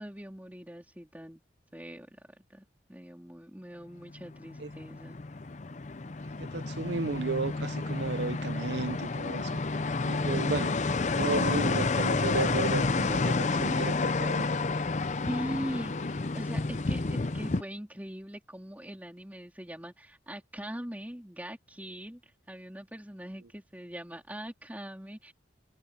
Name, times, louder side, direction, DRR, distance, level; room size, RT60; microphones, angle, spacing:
voice 1, 0.0-1.4 1.7-5.2 15.3-25.3, equal, 10° right, 3.7 m, -41 dB
sound 1, 4.2-17.6, left 3 dB, 40° left, 0.6 m, -30 dB
voice 2, 6.4-9.6 10.0-10.8 11.2-14.5, right 4 dB, 75° right, 0.7 m, -33 dB
head